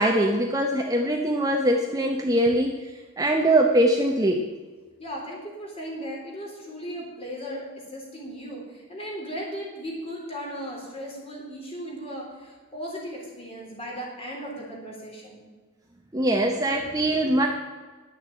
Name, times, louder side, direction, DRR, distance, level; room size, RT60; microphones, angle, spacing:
voice 1, 0.0-2.9 3.2-4.4 16.1-17.5, right 1 dB, 15° right, 1 dB, 0.8 m, -22 dB
voice 2, 5.0-15.4, equal, 25° left, -2 dB, 3.3 m, -36 dB
10.5 x 7.3 x 7.8 m, 1.4 s
head